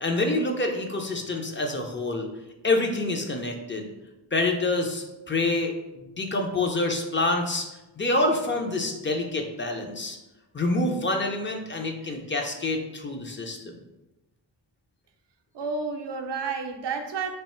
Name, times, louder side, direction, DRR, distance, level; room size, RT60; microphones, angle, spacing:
voice 1, 0.0-2.3 2.6-3.9 4.3-7.7 8.0-10.2 10.5-13.7, left 2 dB, 25° left, 3 dB, 0.5 m, -27 dB
voice 2, 15.5-17.4, right 4 dB, 70° right, 5 dB, 0.6 m, -31 dB
3.3 x 2.4 x 4.2 m, 1.0 s
wide cardioid pair, 100°, 44 cm